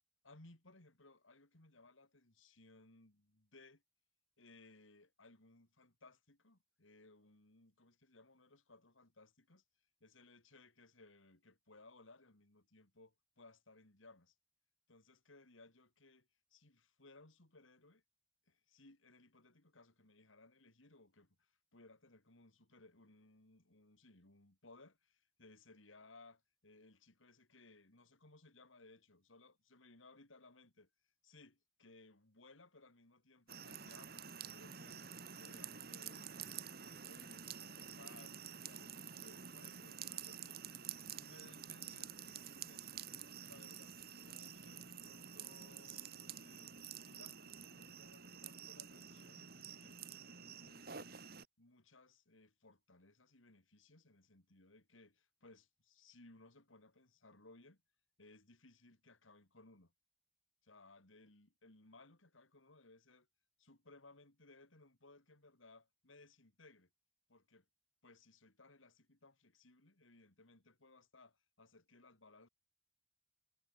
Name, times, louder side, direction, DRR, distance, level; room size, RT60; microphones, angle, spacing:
voice 1, 0.2-3.8 4.4-9.6 10.0-14.4 14.9-18.0 18.5-30.9 31.2-35.0 35.4-40.7 41.1-43.0 43.5-44.0 44.3-51.1 51.6-57.8 58.2-59.9 60.6-63.3 63.6-66.9 67.3-67.7 68.0-72.5, left 2 dB, 85° left, 3.5 m, -63 dB
sound 1, 33.5-51.4, right 8 dB, 50° right, 2.9 m, -50 dB
head